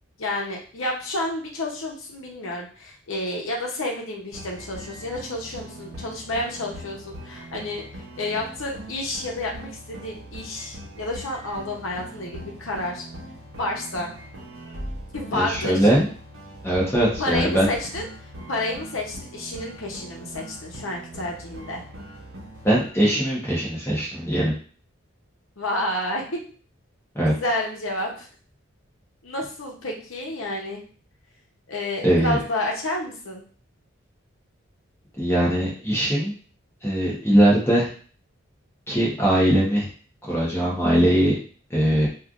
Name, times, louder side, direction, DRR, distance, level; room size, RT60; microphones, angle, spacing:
voice 1, 0.2-13.1 13.6-14.1 15.1-15.9 17.2-18.1 18.5-21.8 25.6-26.4 27.3-28.3 29.2-30.8 31.7-33.4, left 1 dB, 85° left, -1 dB, 0.8 m, -30 dB
sound 1, 4.3-22.9, right 1 dB, 85° right, 0.8 m, -40 dB
voice 2, 15.3-16.0 16.6-17.7 22.6-24.5 27.1-27.3 32.0-32.4 35.2-36.3 36.8-37.9 38.9-39.9 40.2-41.3 41.7-42.1, right 1 dB, 10° left, -5 dB, 0.9 m, -20 dB
3.2 x 2.5 x 2.5 m, 0.42 s
head